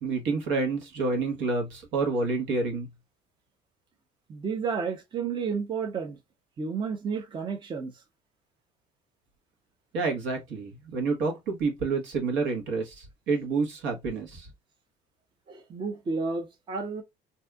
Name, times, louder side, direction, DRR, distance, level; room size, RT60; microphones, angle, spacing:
voice 1, 0.0-2.9 9.9-14.5, right 4 dB, 70° right, 1.3 m, -28 dB
voice 2, 4.3-6.2 6.6-7.9 15.5-17.0, right 5 dB, 25° right, 0.6 m, -31 dB
2.7 x 2.3 x 3.3 m
cardioid pair, 135°, 20 cm